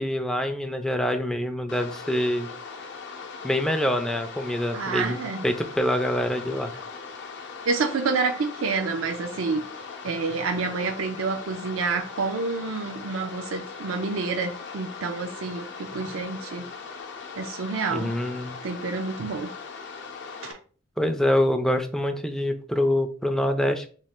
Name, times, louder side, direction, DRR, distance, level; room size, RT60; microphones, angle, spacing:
voice 1, 0.0-2.5 3.4-5.2 5.4-6.7 17.9-18.6 21.0-23.9, left 1 dB, 5° left, 6 dB, 0.3 m, -25 dB
sound 1, 1.7-20.5, left 5 dB, 60° left, 0.6 m, -40 dB
voice 2, 4.7-5.4 7.7-9.6 10.0-16.7 17.4-18.1 18.6-19.5 20.4-20.6, right 4 dB, 80° right, 6 dB, 0.4 m, -28 dB
3.1 x 2.3 x 4.3 m, 0.41 s
head